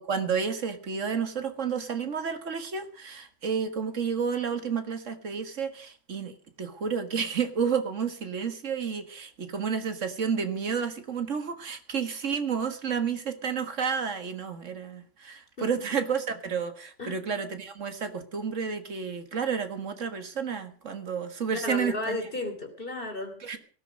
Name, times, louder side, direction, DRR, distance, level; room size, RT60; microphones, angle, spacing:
voice 1, 0.0-22.2 23.4-23.6, right 6 dB, 75° right, 9 dB, 2.0 m, -31 dB
voice 2, 21.5-23.6, left 2 dB, 45° left, 5 dB, 3.3 m, -34 dB
17.5 x 13.0 x 5.2 m, 0.43 s
omnidirectional pair, 1.3 m